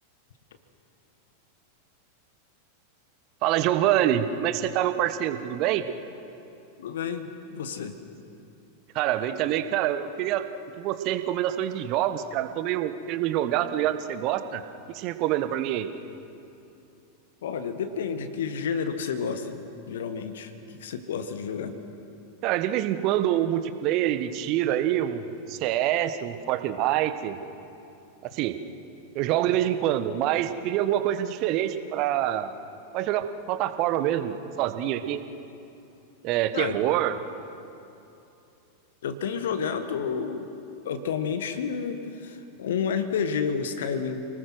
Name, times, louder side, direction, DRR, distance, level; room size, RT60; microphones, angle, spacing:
voice 1, 3.4-5.8 8.9-10.4 10.8-14.6 14.9-15.9 22.4-25.2 25.5-27.4 28.3-28.6 29.1-32.5 32.9-35.2 36.2-37.2, right 12 dB, 40° right, 11 dB, 1.3 m, -26 dB
voice 2, 6.8-8.0 17.4-19.6 19.9-21.8 36.5-36.8 39.0-40.5 40.8-44.3, left 6 dB, 60° left, 9 dB, 1.5 m, -30 dB
29.0 x 20.0 x 6.3 m, 2.8 s
figure-of-eight pair, 90°, 0 cm